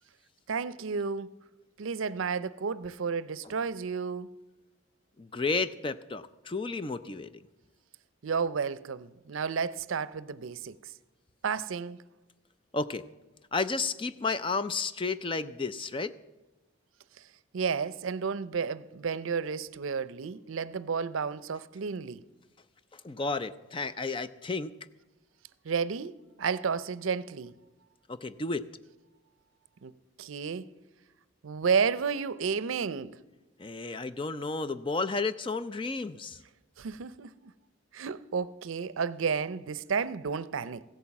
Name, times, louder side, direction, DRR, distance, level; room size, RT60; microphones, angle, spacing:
voice 1, 0.5-1.3 1.8-4.3 8.2-10.9 11.4-12.0 17.5-22.2 25.6-27.5 29.8-29.9 30.2-30.7 31.4-33.2 36.8-37.5 37.9-40.8, right 5 dB, 80° right, 0.5 m, -32 dB
voice 2, 5.2-7.4 12.7-13.0 13.5-16.1 22.9-24.7 28.1-28.6 33.6-36.4, left 3 dB, 25° left, 0.4 m, -32 dB
15.5 x 8.8 x 7.1 m
head